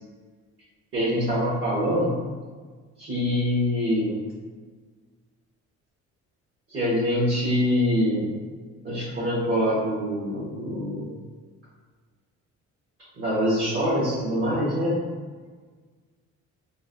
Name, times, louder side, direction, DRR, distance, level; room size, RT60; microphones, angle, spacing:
voice 1, 0.9-2.2 3.0-4.2 6.7-8.3 8.8-11.1 13.2-14.9, equal, 45° right, -9 dB, 1.2 m, -24 dB
4.0 x 2.1 x 2.5 m, 1.5 s
cardioid pair, 90°, 30 cm